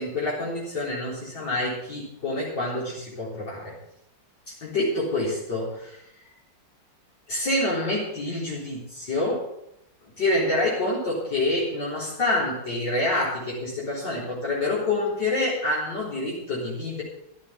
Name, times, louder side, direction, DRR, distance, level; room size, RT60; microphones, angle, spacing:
voice 1, 0.0-3.7 4.6-6.0 7.3-9.5 10.2-17.0, left 2 dB, 65° left, -8 dB, 4.7 m, -27 dB
13.0 x 8.1 x 8.3 m, 0.77 s
omnidirectional pair, 2.0 m